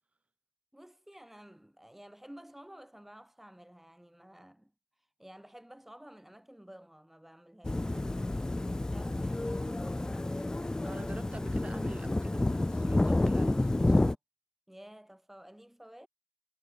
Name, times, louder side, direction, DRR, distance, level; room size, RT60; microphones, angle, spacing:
voice 1, 0.7-4.7 5.2-9.8 14.7-16.1, equal, 5° right, 5.9 m, -53 dB
sound 1, 7.6-14.2, left 2 dB, 15° left, 0.5 m, -29 dB
voice 2, 10.8-14.1, right 3 dB, 25° right, 1.6 m, -47 dB
cardioid pair, 70°, 5 cm